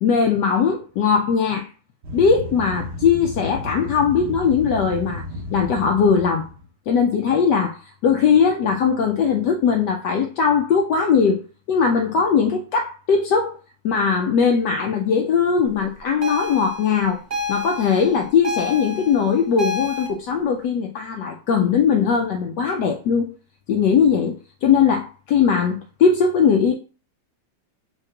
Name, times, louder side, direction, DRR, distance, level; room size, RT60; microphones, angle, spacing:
voice 1, 0.0-1.7 2.1-5.2 5.5-6.5 6.9-11.4 11.7-13.6 13.8-17.2 17.5-23.3 23.7-26.7, left 6 dB, 70° left, 1.1 m, -19 dB
sound 1, 2.0-6.6, left 1 dB, 50° right, 0.8 m, -33 dB
sound 2, 16.2-20.1, left 2 dB, 30° right, 1.0 m, -29 dB
4.7 x 2.4 x 4.4 m
omnidirectional pair, 2.0 m